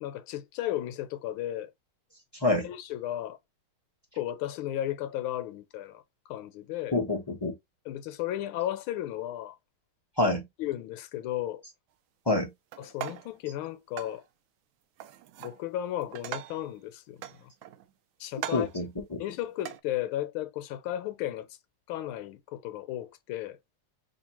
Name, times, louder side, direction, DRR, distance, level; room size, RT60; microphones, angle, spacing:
voice 1, 0.0-1.7 2.6-3.4 4.1-7.0 7.9-9.6 10.6-11.6 12.8-14.2 15.4-17.5 18.2-18.7 19.2-21.5 21.9-23.6, left 13 dB, 80° left, 1.5 m, -34 dB
voice 2, 6.9-7.5 10.2-10.4 12.3-12.5 18.5-19.2, left 2 dB, 30° left, 0.4 m, -27 dB
sound 1, 12.7-13.4 14.0-14.2 15.0-15.6 16.0-16.7 17.2-17.9 18.3-18.8 19.6-19.8, right 12 dB, 75° right, 1.3 m, -40 dB
5.1 x 2.7 x 2.9 m
omnidirectional pair, 2.3 m